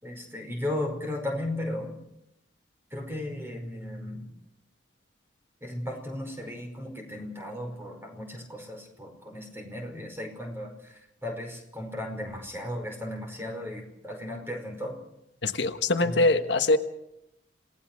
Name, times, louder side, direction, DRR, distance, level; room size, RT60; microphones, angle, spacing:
voice 1, 0.0-1.9 2.9-4.3 5.6-15.0 16.0-16.4, left 1 dB, 10° right, 3 dB, 5.2 m, -35 dB
voice 2, 15.4-16.8, left 2 dB, 70° left, 7 dB, 1.3 m, -23 dB
27.5 x 18.0 x 6.2 m, 0.85 s
head